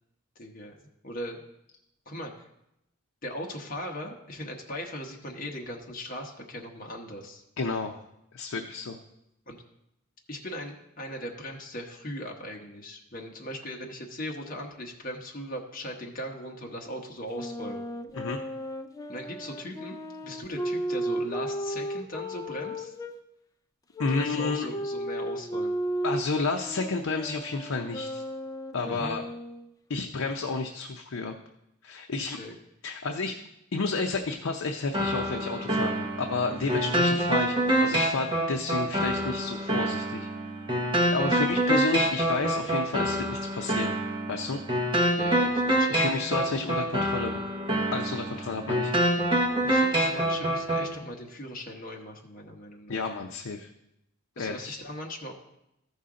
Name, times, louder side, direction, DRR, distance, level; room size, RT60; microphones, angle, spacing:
voice 1, 0.4-0.7 1.0-1.4 2.1-2.3 3.2-7.4 9.5-9.6 10.3-17.9 19.1-22.9 24.0-25.8 28.8-29.2 32.1-32.5 36.5-36.8 41.1-41.6 45.2-46.0 49.6-53.0 54.4-55.3, equal, 40° left, 0 dB, 1.1 m, -39 dB
voice 2, 7.6-8.0 8.3-9.0 18.1-18.4 24.0-24.7 26.0-28.2 28.7-29.2 29.9-31.3 31.8-32.4 32.8-33.4 33.7-40.3 41.1-44.0 44.3-44.6 45.9-47.4 47.9-48.9 52.9-53.7 54.4-54.8, left 3 dB, 80° left, 3 dB, 0.6 m, -31 dB
Wind instrument woodwind instrument, 17.3-23.2 23.9-29.7, equal, 15° left, 0.4 m, -34 dB
sound 1, 34.9-50.9, right 1 dB, 25° right, 1.1 m, -26 dB
14.0 x 5.5 x 3.7 m, 0.84 s
head